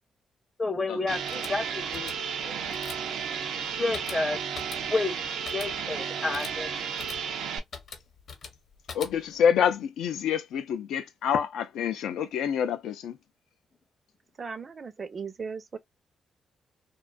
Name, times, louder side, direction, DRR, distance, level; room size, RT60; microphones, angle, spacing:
voice 1, 0.6-2.1 2.4-2.6 3.8-4.4 4.9-6.9, left 3 dB, 20° left, 0.5 m, -31 dB
sound 1, 1.1-9.5, left 5 dB, 55° left, 0.8 m, -45 dB
sound 2, 1.1-7.6, right 7 dB, 85° right, 0.5 m, -33 dB
voice 2, 8.9-13.2, left 8 dB, 90° left, 0.3 m, -27 dB
voice 3, 14.4-15.8, right 5 dB, 35° right, 0.5 m, -37 dB
2.5 x 2.2 x 2.3 m
cardioid pair, 110°, 0 cm